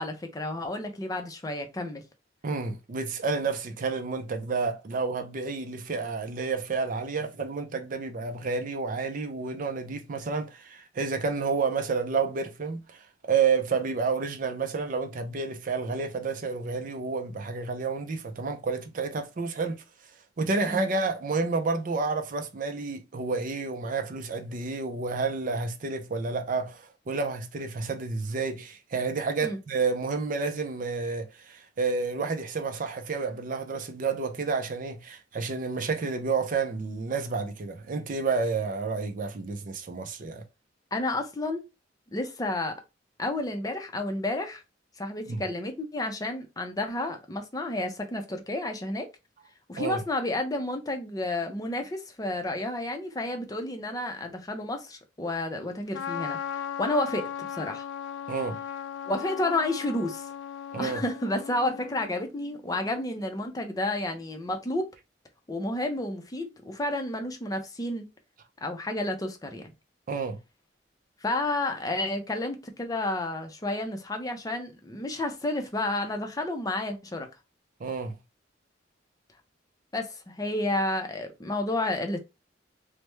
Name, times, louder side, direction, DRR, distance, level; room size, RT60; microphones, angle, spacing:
voice 1, 0.0-2.0 20.7-20.8 29.4-29.6 40.9-41.7 42.1-42.7 43.2-44.6 45.0-49.1 49.7-57.9 59.1-60.3 60.8-64.9 65.5-68.1 68.6-69.7 71.2-77.3 79.9-82.2, left 2 dB, 20° left, 0.5 m, -31 dB
voice 2, 2.4-19.8 20.4-40.4 45.3-45.4 49.8-50.0 58.3-58.6 60.7-61.0 70.1-70.4 77.8-78.2, right 4 dB, 45° right, 0.4 m, -30 dB
Trumpet, 55.9-62.1, left 8 dB, 75° left, 0.3 m, -37 dB
3.2 x 2.1 x 3.1 m
head